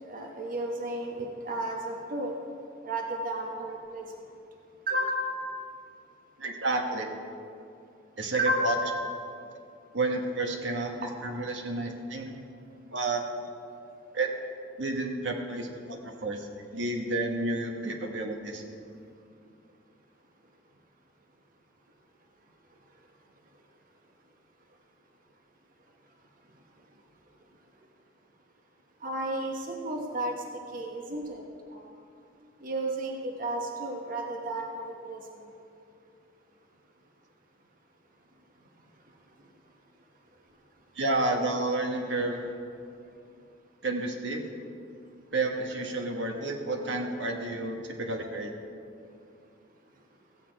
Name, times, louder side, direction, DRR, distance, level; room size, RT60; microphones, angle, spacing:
voice 1, 0.1-2.3 2.8-4.0 4.9-5.5 8.4-9.0 29.0-30.3 30.7-31.4 31.7-31.9 32.6-35.2, right 1 dB, 50° right, 1 dB, 1.0 m, -32 dB
voice 2, 6.4-7.1 8.2-8.8 9.9-10.9 11.2-12.3 12.9-13.2 14.1-14.3 14.8-16.5 16.7-18.6 40.9-42.4 43.8-44.4 45.3-48.5, right 2 dB, 80° right, 2 dB, 1.3 m, -30 dB
15.5 x 8.4 x 4.6 m, 2.5 s
head